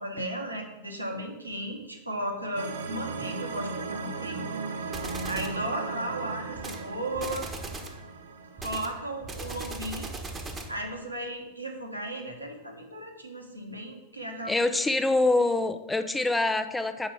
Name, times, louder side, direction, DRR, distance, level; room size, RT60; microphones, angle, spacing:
voice 1, 0.0-4.5 4.8-7.5 8.6-10.1 10.5-14.5, right 1 dB, 85° right, 1 dB, 1.2 m, -35 dB
sound 1, 2.6-9.6, right 4 dB, 65° right, 0.5 m, -37 dB
sound 2, 4.9-5.6 6.5-6.8 7.1-8.0 8.6-10.8, right 3 dB, 20° right, 1.0 m, -38 dB
voice 2, 14.5-17.1, left 2 dB, 5° left, 9 dB, 0.4 m, -25 dB
5.5 x 4.9 x 6.0 m, 1.1 s
figure-of-eight pair, 90°, 0 cm